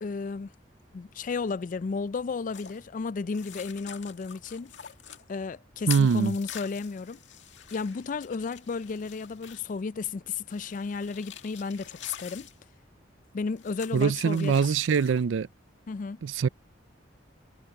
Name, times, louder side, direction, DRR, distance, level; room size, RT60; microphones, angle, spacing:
voice 1, 0.0-0.5 0.9-4.7 5.3-7.2 7.7-12.5 13.3-14.5 15.9-16.2, left 4 dB, 45° left, 0.4 m, -33 dB
sound 1, 2.5-2.8 3.3-5.2 5.9-9.8 10.5-12.6 13.6-15.2, left 9 dB, 70° left, 2.2 m, -46 dB
voice 2, 5.9-6.3 13.9-15.5 16.2-16.5, right 6 dB, 85° right, 0.4 m, -23 dB
head